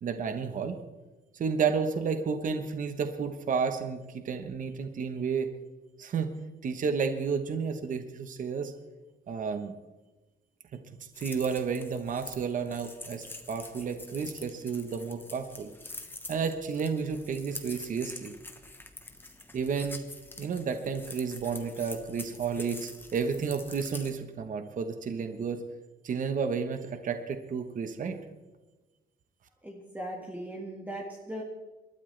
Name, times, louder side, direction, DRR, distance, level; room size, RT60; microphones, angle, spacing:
voice 1, 0.0-0.8 1.3-5.5 6.0-6.3 6.6-8.7 9.3-9.7 10.7-10.8 11.2-15.7 16.3-18.4 19.5-20.0 20.4-25.6 26.0-28.2, right 6 dB, 40° right, 7 dB, 1.1 m, -31 dB
sound 1, 11.1-24.1, left 2 dB, 10° left, 1.1 m, -45 dB
voice 2, 29.6-31.4, right 1 dB, 10° right, -2 dB, 1.8 m, -39 dB
28.0 x 13.0 x 3.3 m, 1.2 s
wide cardioid pair, 175°, 20 cm